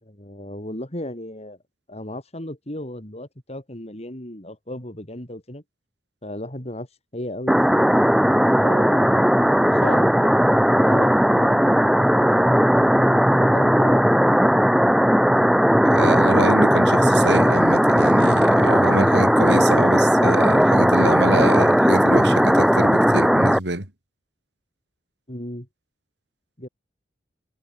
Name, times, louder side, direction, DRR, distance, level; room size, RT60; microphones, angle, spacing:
voice 1, 0.0-1.6 1.9-5.6 6.2-6.9 7.1-8.0 8.6-9.4 9.6-10.3 10.8-14.1 25.3-25.7 26.6-26.7, left 1 dB, 35° left, 4.9 m, -35 dB
sound 1, 7.5-23.6, equal, ahead, 0.6 m, -17 dB
voice 2, 15.8-23.9, right 2 dB, 65° right, 4.0 m, -26 dB
head